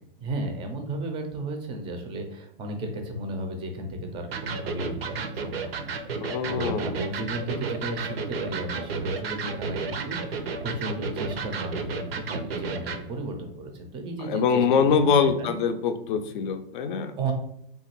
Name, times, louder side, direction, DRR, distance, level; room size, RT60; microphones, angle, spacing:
voice 1, 0.2-6.2 6.5-15.5 17.2-17.3, right 2 dB, 20° right, 4 dB, 0.4 m, -34 dB
Electric guitar, 4.3-13.0, right 4 dB, 85° right, 0.5 m, -32 dB
voice 2, 6.2-6.9 14.2-17.1, left 6 dB, 55° left, 8 dB, 0.4 m, -24 dB
3.0 x 2.2 x 2.9 m, 0.74 s
hypercardioid pair, 120°, 29 cm